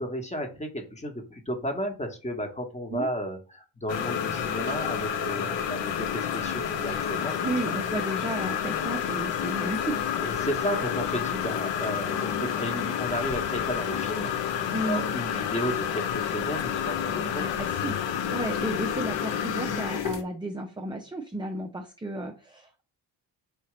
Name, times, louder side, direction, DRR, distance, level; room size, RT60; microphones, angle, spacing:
voice 1, 0.0-7.3 10.2-14.3 14.8-17.5, equal, 15° left, 3 dB, 1.2 m, -33 dB
sound 1, 3.9-20.2, left 8 dB, 60° left, 0.7 m, -29 dB
voice 2, 7.4-10.0 14.7-15.1 17.4-18.0 18.3-22.8, right 2 dB, 10° right, 2 dB, 0.6 m, -33 dB
4.9 x 2.7 x 3.2 m, 0.35 s
hypercardioid pair, 45°, 50 cm